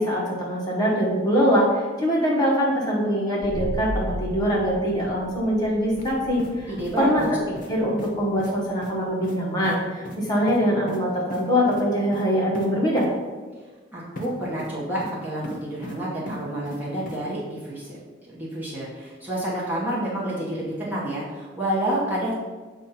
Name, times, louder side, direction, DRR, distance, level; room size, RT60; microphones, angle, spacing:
voice 1, 0.0-7.3 7.7-13.0, equal, 20° left, -4 dB, 1.2 m, -23 dB
sound 1, 3.4-9.0, equal, 80° right, 0.5 m, -36 dB
sound 2, 6.0-6.1 6.4-7.3 7.6-7.7 8.0-8.1 8.4-8.5 8.8-8.9 9.2-9.4 9.6-9.8 10.0-10.2 10.5-11.0 11.3-11.4 11.7-11.8 12.1-12.2 12.5-12.7 13.0-13.1 14.2-14.3 14.6-15.1 15.4-16.0 16.3-16.8 17.1-17.2, left 1 dB, 45° left, 0.9 m, -37 dB
voice 2, 6.7-7.3 13.9-22.4, right 1 dB, 10° right, -7 dB, 1.0 m, -29 dB
7.2 x 2.5 x 5.6 m, 1.4 s
head